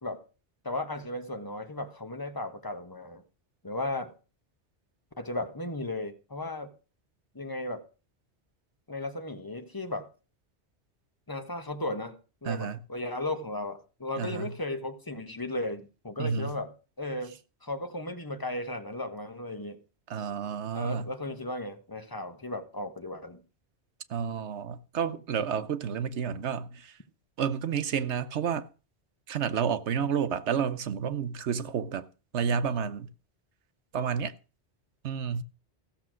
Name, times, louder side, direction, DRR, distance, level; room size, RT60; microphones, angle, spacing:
voice 1, 0.6-3.2 3.6-4.1 5.2-6.7 7.3-7.8 8.9-10.1 11.3-12.1 12.4-16.7 17.0-17.3 17.6-19.8 20.7-23.4, left 2 dB, 20° left, 1.3 m, -35 dB
voice 2, 12.4-12.8 14.2-14.5 16.2-16.5 20.1-21.1 24.1-27.0 27.4-28.7 29.3-32.1 32.3-33.1 33.9-34.3 35.0-35.4, right 7 dB, 80° right, 1.1 m, -30 dB
15.0 x 7.0 x 6.2 m
omnidirectional pair, 1.1 m